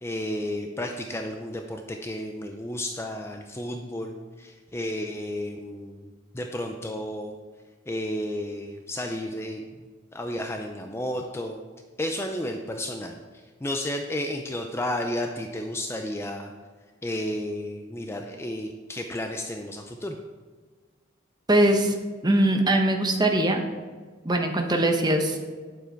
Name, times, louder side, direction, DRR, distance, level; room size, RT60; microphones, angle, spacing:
voice 1, 0.0-6.1 6.3-7.4 7.9-9.8 10.1-11.6 12.0-16.5 17.0-20.2, left 1 dB, 15° left, 4 dB, 0.4 m, -32 dB
voice 2, 21.5-21.9 22.2-23.6 24.2-25.4, right 1 dB, 20° right, 4 dB, 0.9 m, -21 dB
9.2 x 7.1 x 4.5 m, 1.5 s
head